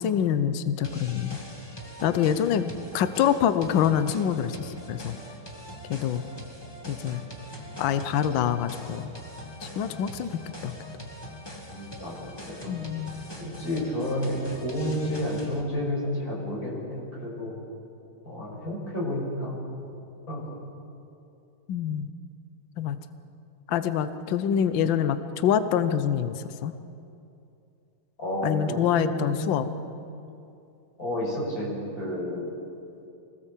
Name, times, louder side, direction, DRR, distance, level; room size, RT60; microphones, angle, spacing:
voice 1, 0.0-1.4 2.0-5.2 5.9-6.2 6.9-7.2 7.8-9.1 9.6-10.7 12.7-13.2 21.7-22.1 22.8-23.0 23.7-26.7 28.4-29.7, left 9 dB, 70° left, 11 dB, 1.5 m, -26 dB
sound 1, 0.8-15.6, equal, 10° left, 1.7 m, -42 dB
voice 2, 11.7-12.8 13.4-17.6 18.2-19.6 20.3-20.6 28.2-29.6 31.0-32.5, left 1 dB, 40° left, -3 dB, 6.3 m, -31 dB
24.5 x 18.5 x 7.4 m, 2.6 s
omnidirectional pair, 2.3 m